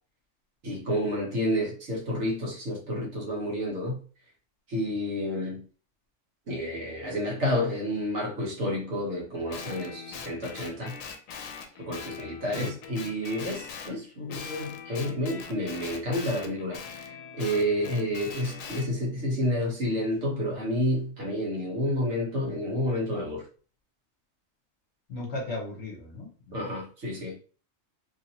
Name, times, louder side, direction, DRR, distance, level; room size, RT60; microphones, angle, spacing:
voice 1, 0.6-4.0 4.7-5.6 6.5-11.0 11.8-23.4 26.5-27.4, equal, 60° right, 1.4 m, -30 dB
Guitar, 9.5-14.0 14.3-18.9, left 6 dB, 85° left, 1.0 m, -42 dB
voice 2, 25.1-26.6, left 2 dB, 60° left, 1.2 m, -36 dB
3.1 x 2.7 x 2.8 m
omnidirectional pair, 1.3 m